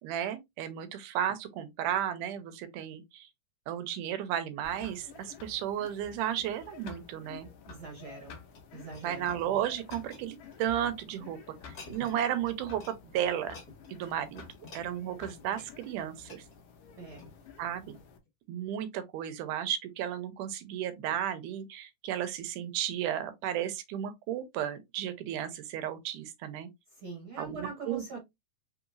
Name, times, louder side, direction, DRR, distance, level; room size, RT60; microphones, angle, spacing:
voice 1, 0.0-3.3 3.7-7.5 8.9-11.4 11.6-13.6 13.9-14.4 14.7-16.4 17.6-18.0 18.5-26.7 27.4-28.2, right 10 dB, 90° right, 2.2 m, -34 dB
sound 1, 4.6-18.2, left 7 dB, 75° left, 1.4 m, -51 dB
voice 2, 7.7-8.4 8.7-9.3 17.0-17.2 27.0-28.2, right 4 dB, 55° right, 1.7 m, -42 dB
sound 2, 7.9-11.0 11.5-12.2 12.5-13.0 13.3-17.5 18.1-18.3, left 3 dB, 50° left, 1.2 m, -52 dB
4.2 x 4.0 x 2.4 m
omnidirectional pair, 3.6 m